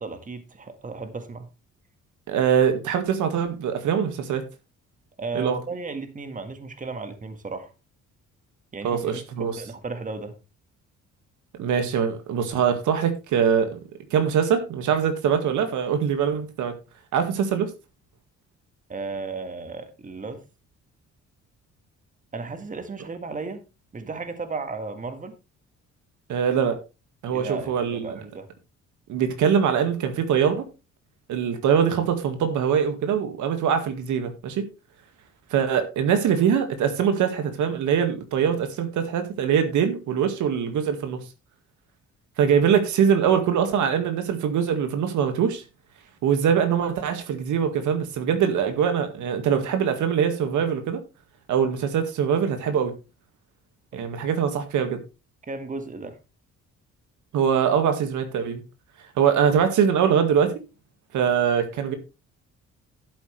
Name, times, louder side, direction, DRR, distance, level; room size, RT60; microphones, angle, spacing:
voice 1, 0.0-1.5 5.2-7.7 8.7-10.4 18.9-20.4 22.3-23.6 23.9-25.4 27.3-28.5 55.5-56.2 59.5-59.6, right 3 dB, 25° right, 1.8 m, -34 dB
voice 2, 2.3-4.4 5.4-5.6 8.8-9.6 11.6-13.8 14.1-16.8 17.1-17.7 26.3-26.8 27.2-28.1 29.1-30.7 31.3-34.6 35.5-41.2 42.4-45.6 46.2-51.0 51.5-52.9 53.9-55.0 57.3-58.6 59.2-60.5 61.1-61.9, right 7 dB, 80° right, 1.9 m, -23 dB
11.5 x 8.2 x 3.3 m
cardioid pair, 105°, 30 cm